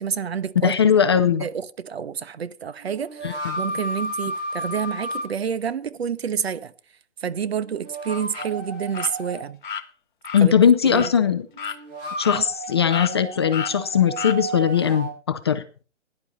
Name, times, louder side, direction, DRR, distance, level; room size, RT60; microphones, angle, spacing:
voice 1, 0.0-0.7 1.4-3.3 3.6-6.7 7.2-9.6 10.4-10.5 10.8-11.1 12.3-12.4, right 7 dB, 55° right, 1.2 m, -28 dB
voice 2, 0.6-1.5 3.2-3.5 10.3-11.5 12.2-15.6, left 8 dB, 20° left, 0.6 m, -19 dB
sound 1, 0.7-0.8 2.8-5.2 7.6-9.4 11.5-15.1, right 1 dB, 20° right, 6.4 m, -33 dB
sound 2, 8.3-8.5 8.9-9.1 9.6-9.8 10.2-10.4 10.9-11.1 11.6-11.8 12.2-12.7 12.9-13.1 13.5-13.7 14.2-14.4, left 8 dB, 40° left, 1.3 m, -31 dB
17.5 x 11.0 x 4.2 m
hypercardioid pair, 150°, 37 cm